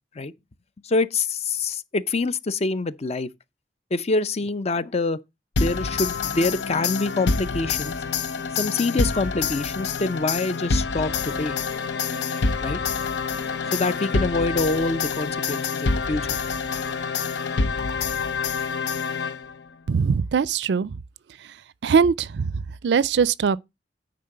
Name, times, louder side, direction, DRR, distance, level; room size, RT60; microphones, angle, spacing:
voice 1, 0.8-3.3 3.9-5.2 5.6-7.9 8.5-11.6 12.6-12.8 13.7-16.3, left 3 dB, 35° left, 0.6 m, -25 dB
sound 1, 5.6-19.7, left 4 dB, 80° left, 0.7 m, -27 dB
voice 2, 19.9-20.9 21.8-22.5 22.8-23.6, right 6 dB, 70° right, 0.4 m, -21 dB
9.5 x 3.9 x 6.5 m
head